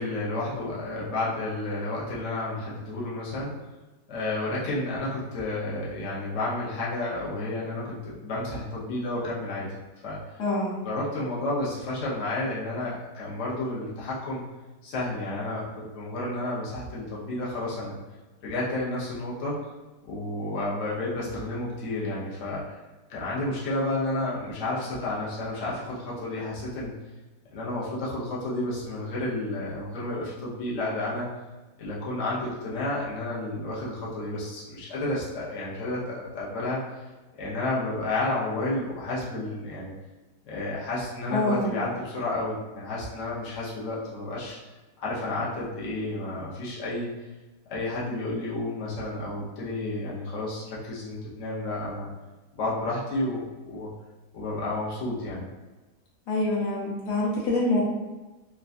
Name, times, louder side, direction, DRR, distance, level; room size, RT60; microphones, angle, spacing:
voice 1, 0.0-3.5 4.1-9.7 10.0-10.2 10.8-14.4 14.8-17.9 18.4-19.6 20.0-22.8 23.1-26.9 27.5-31.3 31.8-36.8 37.4-39.9 40.4-44.6 45.0-47.1 47.7-52.1 52.5-53.9 54.3-55.4, left 2 dB, 55° left, -7 dB, 1.0 m, -31 dB
voice 2, 10.4-10.8 41.3-41.7 56.3-57.8, left 2 dB, 80° left, -5 dB, 1.4 m, -25 dB
3.3 x 2.3 x 2.5 m, 1.2 s
omnidirectional pair, 1.7 m